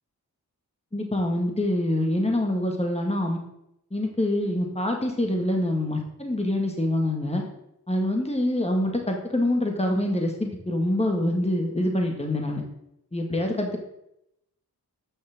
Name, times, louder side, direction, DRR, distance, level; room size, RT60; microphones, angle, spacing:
voice 1, 0.9-3.4 3.9-7.4 7.9-12.6 13.1-13.8, left 1 dB, 15° left, 1 dB, 2.0 m, -25 dB
11.0 x 6.5 x 3.8 m, 0.80 s
cardioid pair, 40°, 38 cm